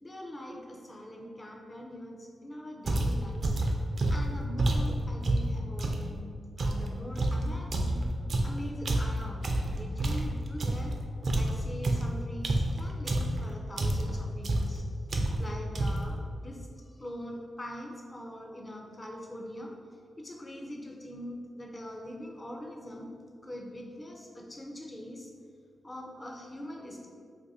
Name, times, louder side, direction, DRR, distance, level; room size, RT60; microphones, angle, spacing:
voice 1, 0.0-3.6 4.1-8.1 8.4-11.0 11.3-14.8 15.4-19.8 20.2-25.3 25.8-27.1, equal, 20° left, 0 dB, 0.4 m, -43 dB
sound 1, 2.9-6.1 6.6-11.0 11.2-13.4 13.8-14.2 14.4-14.8 15.1-15.5 15.7-16.1, right 1 dB, 50° right, 0.3 m, -28 dB
2.6 x 2.5 x 4.0 m, 2.2 s
wide cardioid pair, 115°, 0 cm